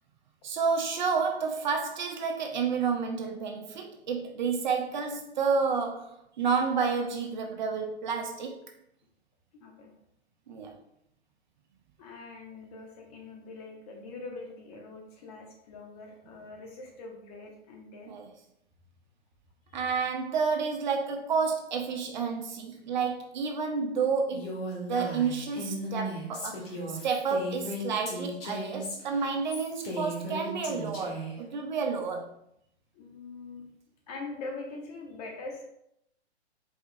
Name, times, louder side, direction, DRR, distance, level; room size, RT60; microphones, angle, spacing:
voice 1, 0.4-8.6 10.5-10.7 18.1-18.3 19.7-24.5 24.9-32.3, right 5 dB, 40° right, 4 dB, 0.5 m, -30 dB
voice 2, 9.6-9.9 12.0-18.1 32.9-33.6 34.1-35.6, left 3 dB, 35° left, 1 dB, 1.0 m, -43 dB
Female speech woman speaking, 24.3-31.4, equal, 60° left, 1.7 m, -36 dB
4.8 x 3.5 x 2.6 m, 0.76 s
hypercardioid pair, 130°, 34 cm